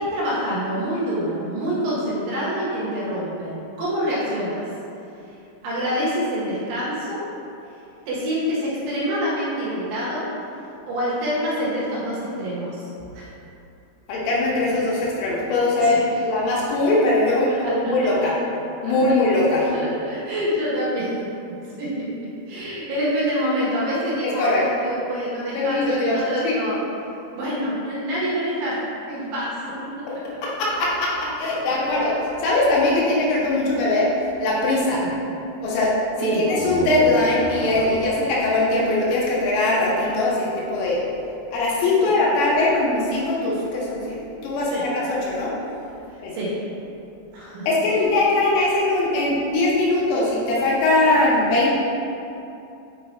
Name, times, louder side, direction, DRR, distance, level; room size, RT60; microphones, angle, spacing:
voice 1, 0.0-4.6 5.6-7.2 8.1-10.3 10.8-12.8 13.1-13.3 14.9-15.0 15.8-16.0 17.8-17.9 18.8-18.9 19.7-21.1 21.8-22.1 22.5-26.8 27.4-28.8 29.1-29.5 31.7-31.8 33.0-33.3 35.0-35.1 36.2-36.5 42.0-42.1 44.7-44.8 46.3-46.5 47.3-47.7, equal, 75° right, -8 dB, 3.8 m, -26 dB
voice 2, 14.1-16.0 16.2-18.3 18.8-19.7 24.4-24.6 25.5-26.2 26.4-26.6 30.1-30.2 30.4-34.1 34.4-35.0 35.6-41.0 41.5-44.2 44.4-45.5 46.2-46.3 47.7-51.8, left 2 dB, 85° left, -5 dB, 3.7 m, -21 dB
sound 1, 36.3-40.0, right 3 dB, 90° right, 3.8 m, -31 dB
8.4 x 2.9 x 4.3 m, 2.8 s
omnidirectional pair, 5.8 m